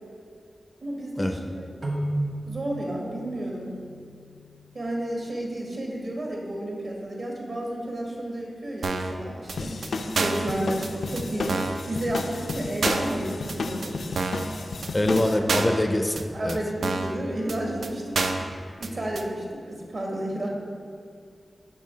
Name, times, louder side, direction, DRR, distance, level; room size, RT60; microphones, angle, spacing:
voice 1, 0.8-1.7 2.5-3.8 4.7-9.8 10.2-14.0 15.0-15.4 16.3-18.5 18.8-20.5, right 1 dB, 60° right, -1 dB, 1.3 m, -32 dB
sound 1, 1.8-5.3, right 1 dB, 40° right, 1.0 m, -34 dB
sound 2, 8.8-9.2 9.5-9.6 9.8-9.9 10.2-10.5 10.8-10.9 11.2-11.3 11.5-11.8 12.2-12.3 12.5-12.6 12.8-13.1 13.5-13.6 13.8-13.9 14.2-14.5 14.8-14.9 15.2-15.3 15.5-15.8 16.2-16.3 16.5-16.6 16.8-17.2 17.5-17.6 17.8-17.9 18.1-18.5 18.8-18.9 19.2-19.3, right 3 dB, 85° right, 0.4 m, -27 dB
sound 3, 9.5-15.4, left 3 dB, 85° left, 0.4 m, -33 dB
voice 2, 14.9-16.6, left 1 dB, 20° left, 6 dB, 0.4 m, -24 dB
8.5 x 2.9 x 5.6 m, 2.2 s
wide cardioid pair, 105°, 0 cm